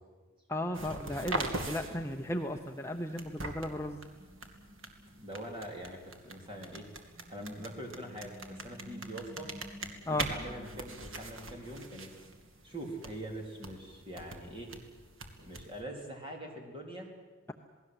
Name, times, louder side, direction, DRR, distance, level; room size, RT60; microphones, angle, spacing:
voice 1, 0.5-4.0 10.1-10.3, left 1 dB, 10° left, 3 dB, 0.8 m, -35 dB
sound 1, 0.7-15.8, right 2 dB, 60° right, 2.4 m, -43 dB
voice 2, 5.2-6.9 7.3-9.5 10.0-12.1 12.6-14.7 15.4-17.1, right 1 dB, 25° right, 1 dB, 3.9 m, -43 dB
27.5 x 19.0 x 7.9 m, 1.4 s
head